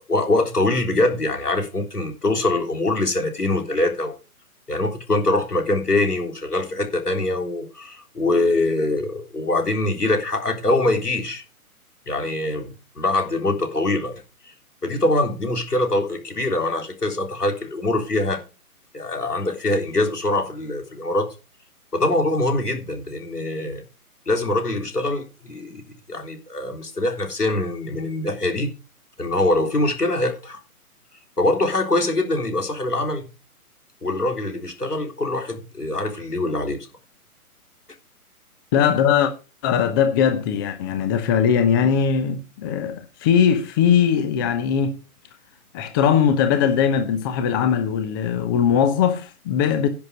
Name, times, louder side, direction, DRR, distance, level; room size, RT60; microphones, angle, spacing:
voice 1, 0.1-4.2 4.7-11.4 12.1-14.2 14.8-18.4 18.9-21.3 21.9-23.8 24.3-28.7 29.2-30.6 31.4-33.3 34.0-36.9, left 2 dB, 85° left, 3.7 m, -23 dB
voice 2, 38.7-39.3 39.6-45.0 45.7-49.9, left 8 dB, 15° left, 0.8 m, -20 dB
10.5 x 6.5 x 6.3 m
figure-of-eight pair, 135°, 45 cm